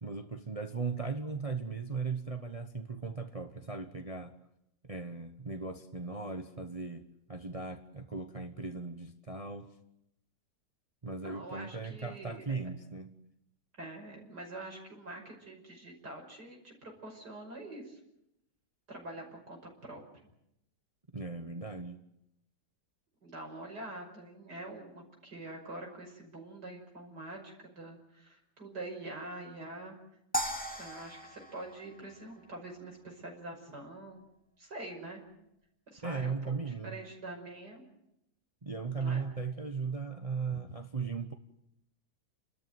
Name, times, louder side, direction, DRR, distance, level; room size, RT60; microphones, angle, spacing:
voice 1, 0.0-4.3 4.8-9.7 11.0-13.1 21.1-22.0 36.0-37.0 38.6-41.3, right 4 dB, 25° right, 1.0 m, -37 dB
voice 2, 11.2-12.4 13.8-18.0 18.9-20.0 23.2-29.9 30.8-34.3 34.6-35.2 35.9-36.4 36.7-37.8 39.0-39.2 40.5-40.6, right 2 dB, 75° right, 6.4 m, -45 dB
sound 1, 30.3-32.7, equal, 5° left, 2.4 m, -38 dB
29.5 x 13.5 x 9.5 m
omnidirectional pair, 1.8 m